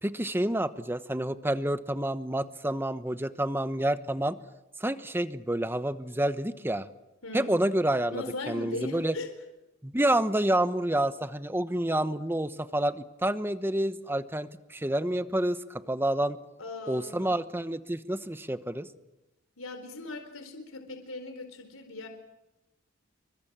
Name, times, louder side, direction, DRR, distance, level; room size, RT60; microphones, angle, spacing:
voice 1, 0.0-4.4 4.8-6.9 7.3-9.1 9.8-16.4 16.9-18.9, right 1 dB, 10° right, 12 dB, 1.0 m, -28 dB
voice 2, 7.2-7.6 8.1-9.3 16.6-17.3 19.6-22.1, left 2 dB, 80° left, 7 dB, 4.2 m, -39 dB
28.5 x 24.5 x 7.5 m, 0.97 s
head